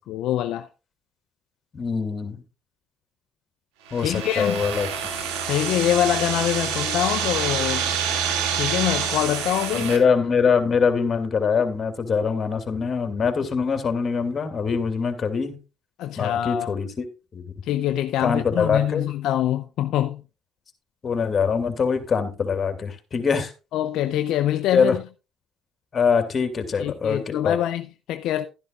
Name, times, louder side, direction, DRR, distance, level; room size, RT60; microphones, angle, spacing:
voice 1, 0.1-0.7 4.0-4.6 5.5-7.8 8.5-9.9 16.0-16.7 17.6-20.2 23.7-25.0 26.8-28.5, left 12 dB, 75° left, 0.6 m, -24 dB
voice 2, 1.7-2.4 3.9-4.9 9.7-15.6 16.2-17.1 17.3-17.5 18.2-19.0 21.0-23.5 24.7-25.0 25.9-27.6, left 5 dB, 40° left, 2.5 m, -23 dB
sound 1, 3.9-10.0, right 7 dB, 85° right, 2.2 m, -27 dB
12.0 x 11.0 x 2.4 m
supercardioid pair, 70°, 0 cm